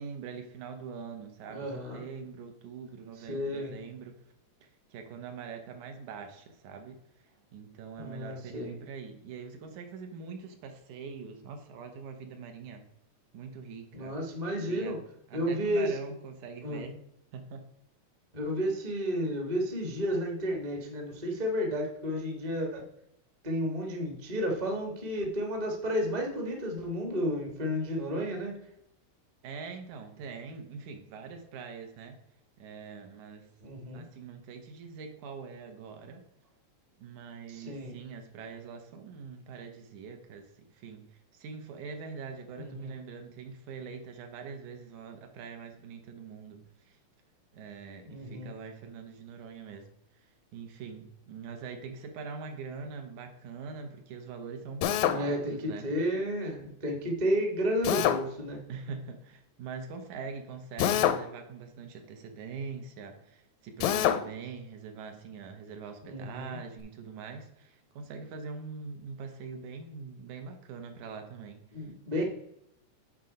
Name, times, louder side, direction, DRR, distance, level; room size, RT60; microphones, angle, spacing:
voice 1, 0.0-4.1 4.9-7.0 7.5-12.8 13.3-14.2 14.7-14.9 15.3-17.0 17.3-17.6 29.4-32.2 32.6-33.5 33.9-36.2 37.0-41.0 41.3-46.6 46.9-47.0 47.5-49.9 50.5-55.9 58.7-71.9 72.2-72.3, right 5 dB, 80° right, 5 dB, 2.4 m, -43 dB
voice 2, 1.5-2.0 3.2-3.8 8.0-8.7 13.9-15.0 15.3-16.0 16.6-16.8 18.3-22.8 23.4-28.5 33.6-34.0 37.5-37.9 42.6-43.0 48.1-48.5 55.0-58.6 66.0-66.6 71.7-72.2, equal, 30° right, 1 dB, 0.7 m, -32 dB
Drill, 54.8-55.2 57.8-58.2 60.8-61.2 63.8-64.2, left 11 dB, 80° left, 1.8 m, -25 dB
8.7 x 3.8 x 5.3 m, 0.77 s
omnidirectional pair, 3.4 m